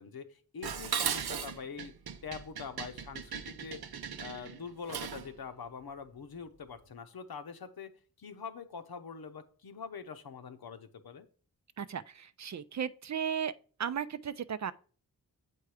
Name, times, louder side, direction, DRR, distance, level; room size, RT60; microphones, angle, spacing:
voice 1, 0.0-1.9 2.2-3.9 4.2-11.3, left 6 dB, 75° left, 0.9 m, -44 dB
Dishes pots and pans, 0.6-5.3, right 7 dB, 90° right, 0.7 m, -37 dB
voice 2, 11.8-13.5 13.8-14.7, right 8 dB, 50° right, 0.5 m, -35 dB
7.7 x 4.6 x 4.9 m
cardioid pair, 55°, 37 cm